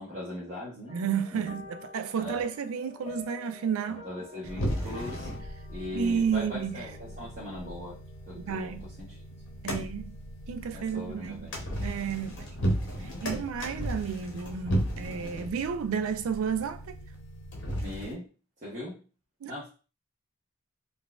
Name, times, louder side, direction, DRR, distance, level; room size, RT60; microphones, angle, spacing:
voice 1, 0.0-1.0 1.3-1.4 2.2-2.5 4.0-5.3 5.7-8.0 8.3-9.1 9.6-9.8 10.7-11.6 13.0-13.4 17.7-18.3 18.6-19.0 19.5-19.7, left 1 dB, 35° right, 1.0 m, -40 dB
sound 1, 0.9-10.4 10.7-11.1 11.5-11.6, left 5 dB, 30° left, 0.4 m, -50 dB
voice 2, 0.9-4.1 5.9-6.9 8.4-8.9 9.6-10.1 10.5-11.5 11.8-12.5 13.0-17.0 19.4-19.5, right 7 dB, 80° right, 0.3 m, -32 dB
sound 2, 4.4-18.1, equal, 55° left, 0.8 m, -35 dB
3.9 x 2.4 x 2.3 m
head